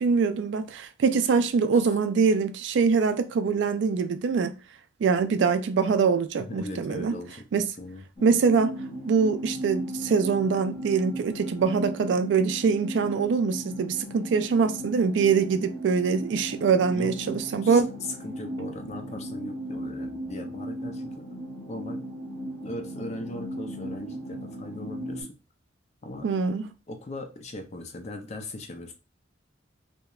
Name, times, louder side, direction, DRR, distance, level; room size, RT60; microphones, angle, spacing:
voice 1, 0.0-4.5 5.0-7.2 7.5-7.7 8.2-8.8 9.1-17.9 26.2-26.7, right 5 dB, 70° right, 0.3 m, -24 dB
voice 2, 6.5-8.0 16.9-17.8 18.2-21.2 21.7-22.0 22.6-25.3 26.0-26.3 26.9-28.9, left 1 dB, 35° left, 0.4 m, -39 dB
sound 1, 8.2-25.2, equal, 20° left, 1.5 m, -37 dB
2.9 x 2.1 x 2.3 m
head